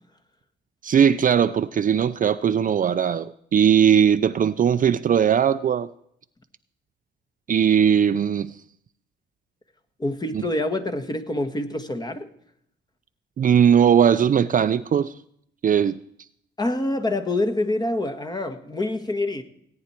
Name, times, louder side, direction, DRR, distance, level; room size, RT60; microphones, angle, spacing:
voice 1, 0.8-5.9 7.5-8.5 13.4-15.1 15.6-16.0, right 8 dB, 45° right, 0.5 m, -19 dB
voice 2, 10.0-12.3 16.6-19.4, left 2 dB, 20° left, 1.5 m, -26 dB
17.5 x 9.7 x 4.5 m
cardioid pair, 90°, 20 cm